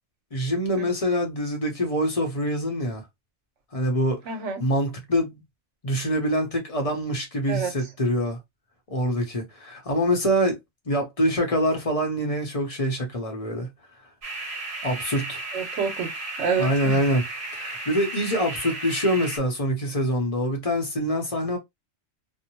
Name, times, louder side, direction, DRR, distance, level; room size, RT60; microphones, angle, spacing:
voice 1, 0.3-3.0 3.7-4.2 4.6-5.4 5.8-8.4 8.9-10.6 10.9-13.7 14.8-15.4 16.6-17.2 17.5-21.6, equal, 35° left, 0.8 m, -25 dB
voice 2, 4.2-4.6 7.5-7.7 15.5-17.0, right 5 dB, 70° right, 1.0 m, -28 dB
sound 1, 14.2-19.4, right 2 dB, 45° right, 1.0 m, -34 dB
2.6 x 2.0 x 2.9 m
omnidirectional pair, 1.3 m